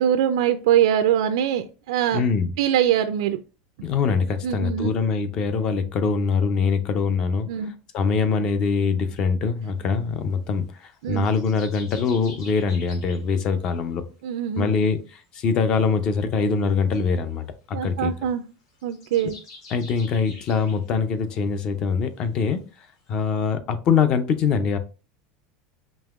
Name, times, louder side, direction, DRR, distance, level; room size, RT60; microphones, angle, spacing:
voice 1, 0.0-2.2 2.6-3.4 4.4-4.9 7.5-7.7 11.0-11.3 14.2-14.8 17.7-18.4 18.8-19.4, right 10 dB, 75° right, 0.3 m, -22 dB
voice 2, 2.1-2.5 3.8-14.0 14.6-18.1 19.7-22.6 23.1-24.8, left 5 dB, 25° left, 0.4 m, -23 dB
sound 1, 10.9-13.3 16.9-17.1 18.7-20.9 21.5-21.6, left 3 dB, 60° left, 1.8 m, -45 dB
5.2 x 2.8 x 2.3 m
supercardioid pair, 180°, 3 cm